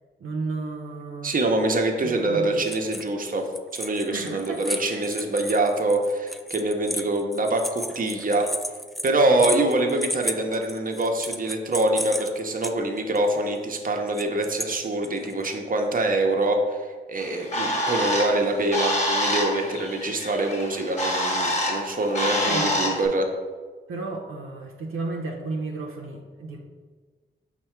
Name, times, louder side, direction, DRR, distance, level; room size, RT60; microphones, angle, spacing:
voice 1, 0.2-1.4 2.0-2.6 4.1-5.0 5.4-5.6 22.2-22.8 23.9-26.6, right 3 dB, 80° right, 0 dB, 0.6 m, -33 dB
voice 2, 1.2-3.4 3.7-8.5 9.0-16.6 17.1-23.3, right 2 dB, 40° right, 3 dB, 0.7 m, -24 dB
sound 1, 2.6-3.2 3.5-12.7 13.2-13.3 14.1-14.7 15.0-15.5, equal, ahead, 0.3 m, -33 dB
Bird, 17.2-23.1, equal, 35° left, 1.2 m, -27 dB
5.3 x 2.2 x 4.4 m, 1.4 s
supercardioid pair, 40°, 21 cm